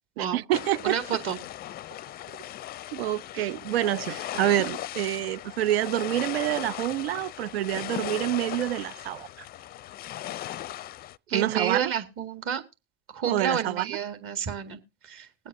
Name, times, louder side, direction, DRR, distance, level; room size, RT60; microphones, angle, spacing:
voice 1, 0.2-1.0 2.9-9.3 11.3-11.9 13.2-13.9, right 14 dB, 80° right, 0.5 m, -27 dB
sound 1, 0.5-11.2, left 13 dB, 30° left, 0.5 m, -38 dB
voice 2, 0.8-1.4 3.4-3.5 4.1-4.2 11.3-12.6 13.1-15.5, right 8 dB, 45° right, 2.1 m, -30 dB
21.0 x 8.1 x 2.7 m
hypercardioid pair, 90°, 30 cm